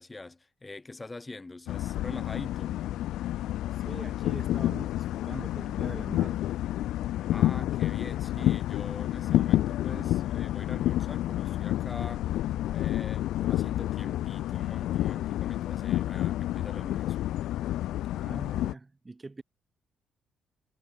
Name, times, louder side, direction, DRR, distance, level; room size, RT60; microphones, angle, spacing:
voice 1, 0.0-2.8 7.2-17.2, left 2 dB, 20° left, 6.2 m, -44 dB
sound 1, 1.7-18.7, left 14 dB, 85° left, 1.1 m, -29 dB
voice 2, 3.8-6.4 18.1-19.4, right 3 dB, 20° right, 5.1 m, -43 dB
cardioid pair, 90°, 0 cm